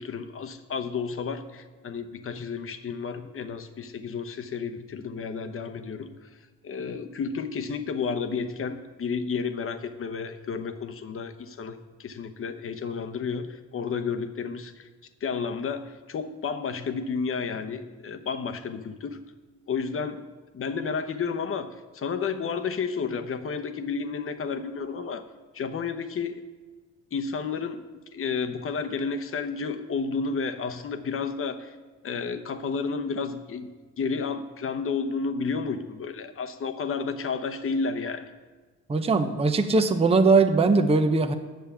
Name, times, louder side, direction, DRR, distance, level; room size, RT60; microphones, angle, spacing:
voice 1, 0.0-6.1 6.6-14.9 15.2-19.2 19.7-20.2 20.5-21.7 21.9-25.2 25.5-26.4 27.1-27.8 28.1-31.7 32.0-33.7 34.0-38.3, left 5 dB, 45° left, 7 dB, 0.9 m, -31 dB
voice 2, 38.9-41.3, right 3 dB, 20° right, 7 dB, 0.7 m, -20 dB
9.2 x 7.3 x 7.0 m, 1.3 s
cardioid pair, 90°, 30 cm